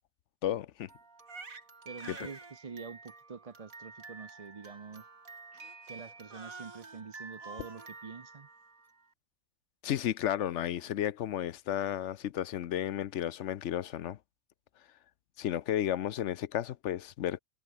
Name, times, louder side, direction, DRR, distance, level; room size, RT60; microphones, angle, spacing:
voice 1, 0.4-0.9 2.1-2.2 9.8-14.2 15.4-17.4, left 11 dB, 65° left, 0.9 m, -33 dB
Crying sobbing, 0.9-9.1, right 4 dB, 80° right, 3.5 m, -49 dB
voice 2, 1.8-5.1 5.9-8.5, right 5 dB, 35° right, 0.7 m, -46 dB
omnidirectional pair, 1.4 m